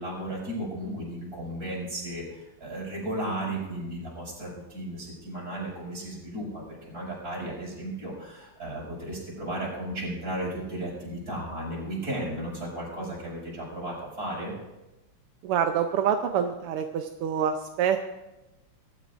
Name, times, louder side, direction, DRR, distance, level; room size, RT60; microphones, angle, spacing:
voice 1, 0.0-14.6, right 1 dB, 40° right, -5 dB, 6.7 m, -35 dB
voice 2, 15.4-18.0, right 8 dB, 85° right, 6 dB, 1.6 m, -26 dB
23.5 x 13.0 x 2.5 m, 1.0 s
omnidirectional pair, 2.4 m